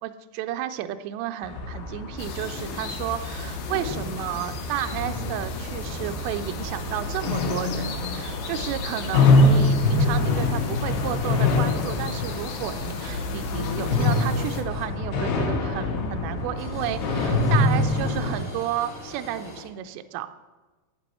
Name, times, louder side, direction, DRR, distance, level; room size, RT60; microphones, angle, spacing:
voice 1, 0.0-20.3, right 12 dB, 85° right, 8 dB, 2.6 m, -32 dB
sound 1, 1.4-18.3, left 2 dB, 85° left, 4.0 m, -25 dB
sound 2, 2.2-14.6, left 5 dB, 70° left, 3.2 m, -37 dB
sound 3, 14.6-19.6, left 2 dB, 45° left, 3.6 m, -44 dB
11.5 x 9.8 x 4.3 m, 1.2 s
omnidirectional pair, 5.3 m